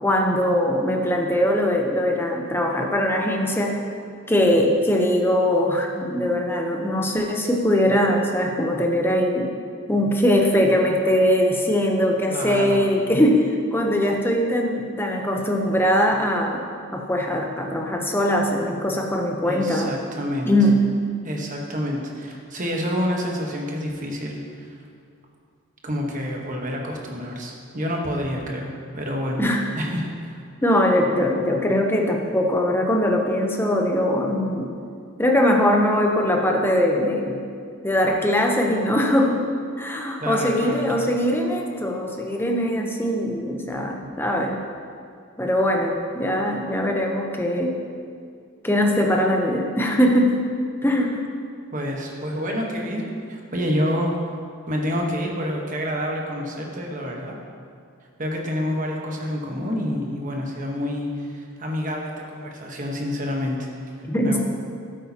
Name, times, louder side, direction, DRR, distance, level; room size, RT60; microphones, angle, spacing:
voice 1, 0.0-3.8 4.3-9.5 9.9-16.6 16.9-19.9 20.5-20.8 29.4-29.7 30.6-34.7 35.2-37.4 37.8-39.4 39.8-44.6 45.4-47.8 48.6-50.4 50.8-51.2 64.0-64.4, equal, 10° left, 1 dB, 0.7 m, -21 dB
voice 2, 12.3-12.8 19.4-20.5 21.2-24.8 25.8-29.4 29.8-30.4 40.2-41.1 51.7-54.1 54.7-57.4 58.2-63.9 64.2-64.4, equal, 35° right, 0 dB, 1.2 m, -28 dB
12.5 x 8.3 x 2.9 m, 2.2 s
head